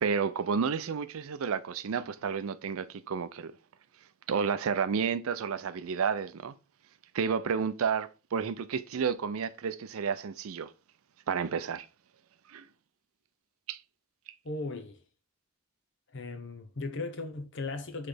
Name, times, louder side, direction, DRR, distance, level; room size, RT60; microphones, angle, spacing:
voice 1, 0.0-3.5 4.3-6.5 7.1-10.7 11.3-11.9 12.5-12.7 13.7-13.8, right 6 dB, 75° right, 0.4 m, -31 dB
voice 2, 14.4-15.0 16.1-18.1, left 3 dB, 55° left, 0.7 m, -37 dB
6.0 x 3.2 x 4.9 m
head